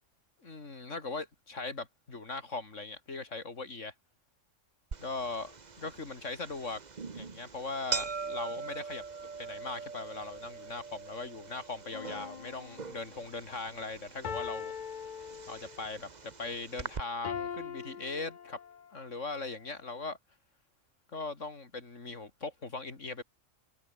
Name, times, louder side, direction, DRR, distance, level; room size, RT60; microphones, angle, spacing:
voice 1, 0.4-3.9 5.0-6.8 7.1-9.0 9.4-14.7 15.5-18.6 18.9-20.2 21.1-23.2, left 3 dB, 70° left, 3.3 m, -39 dB
sound 1, 4.9-17.0, right 5 dB, 35° right, 1.2 m, -42 dB
sound 2, 11.9-13.2 14.2-15.9 17.2-19.0 19.6-19.7, left 7 dB, 45° left, 0.7 m, -41 dB
omnidirectional pair, 1.3 m